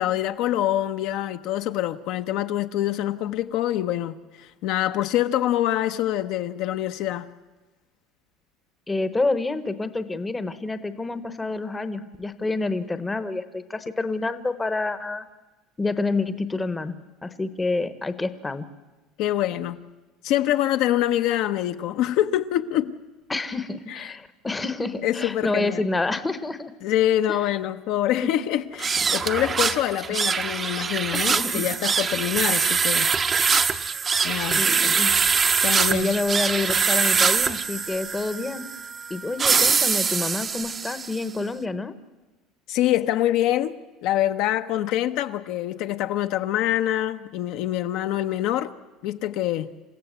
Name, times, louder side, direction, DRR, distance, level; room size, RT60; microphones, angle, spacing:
voice 1, 0.0-7.3 19.2-19.8 20.2-22.9 23.9-24.2 25.0-25.8 26.8-33.1 34.2-35.0 35.6-36.1 42.7-48.7 49.0-49.7, left 13 dB, 55° left, 0.8 m, -25 dB
voice 2, 8.9-15.3 15.8-18.7 23.3-26.7 27.3-27.4 28.1-28.3 31.1-31.7 34.6-35.2 35.9-38.7 39.1-42.0, left 3 dB, 10° left, 0.9 m, -28 dB
sound 1, 28.7-41.2, right 5 dB, 20° right, 0.7 m, -23 dB
27.5 x 15.5 x 8.0 m
cardioid pair, 165°, 0 cm